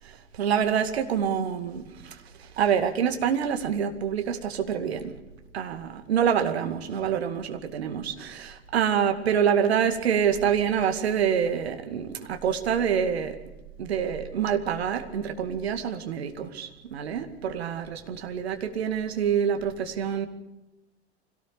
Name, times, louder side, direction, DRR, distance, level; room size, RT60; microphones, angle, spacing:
voice 1, 0.3-5.1 5.5-13.4 13.8-20.3, right 8 dB, 65° right, 7 dB, 2.3 m, -26 dB
25.0 x 18.0 x 6.9 m, 1.0 s
figure-of-eight pair, 80°, 34 cm